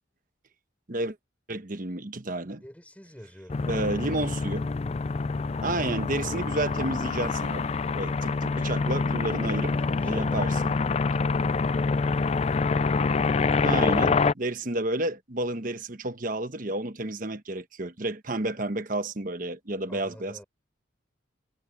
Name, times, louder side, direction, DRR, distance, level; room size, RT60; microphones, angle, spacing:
voice 1, 1.5-2.6 3.7-4.7 5.6-9.7 10.0-10.7 13.6-20.4, right 2 dB, 45° right, 1.2 m, -31 dB
voice 2, 2.6-4.1 9.7-11.2 19.9-20.5, equal, 5° left, 6.1 m, -47 dB
sound 1, 3.5-14.3, left 4 dB, 30° left, 0.4 m, -26 dB
head